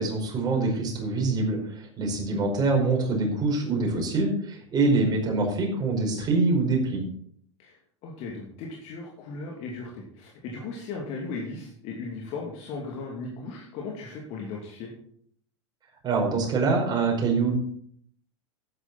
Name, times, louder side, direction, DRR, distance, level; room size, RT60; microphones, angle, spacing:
voice 1, 0.0-1.6 2.0-7.0 16.0-17.5, right 3 dB, 25° right, 0 dB, 5.1 m, -24 dB
voice 2, 2.0-2.4 7.6-14.9, left 3 dB, 45° left, -1 dB, 2.8 m, -37 dB
12.0 x 9.8 x 4.2 m, 0.62 s
figure-of-eight pair, 90°, 16 cm